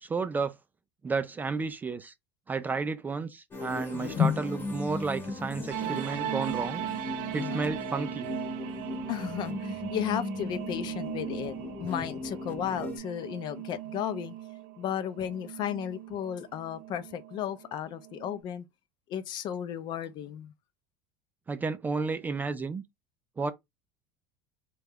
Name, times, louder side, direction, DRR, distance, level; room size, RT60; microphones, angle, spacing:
voice 1, 0.0-0.5 1.0-2.1 2.5-6.8 7.3-8.3 21.5-22.8 23.4-23.5, right 4 dB, 15° right, 0.3 m, -32 dB
sound 1, 3.5-13.0, left 2 dB, 20° left, 0.9 m, -38 dB
voice 2, 3.9-4.4 7.3-7.7 9.1-14.3 14.8-18.7 19.1-20.5, left 9 dB, 45° left, 0.5 m, -33 dB
sound 2, 5.7-18.4, right 13 dB, 65° right, 0.5 m, -39 dB
3.2 x 2.3 x 3.5 m
supercardioid pair, 125°, 10 cm